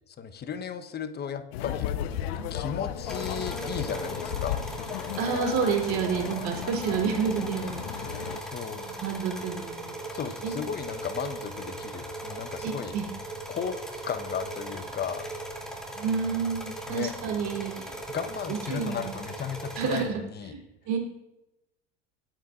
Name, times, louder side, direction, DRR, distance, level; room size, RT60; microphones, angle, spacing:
voice 1, 0.1-1.9 2.5-4.6 8.4-8.8 10.1-12.9 13.5-15.2 16.9-17.1 18.1-20.5, left 7 dB, 30° left, 9 dB, 1.2 m, -35 dB
sound 1, 1.5-8.4, left 10 dB, 65° left, 1.0 m, -35 dB
sound 2, 3.1-20.0, right 1 dB, ahead, 3.0 m, -38 dB
voice 2, 5.2-8.1 8.7-10.1 10.4-10.5 12.6-13.1 15.9-18.0 18.7-19.1 19.8-21.0, right 6 dB, 50° right, 2 dB, 3.7 m, -30 dB
24.5 x 8.9 x 2.6 m, 0.90 s
hypercardioid pair, 75°, 34 cm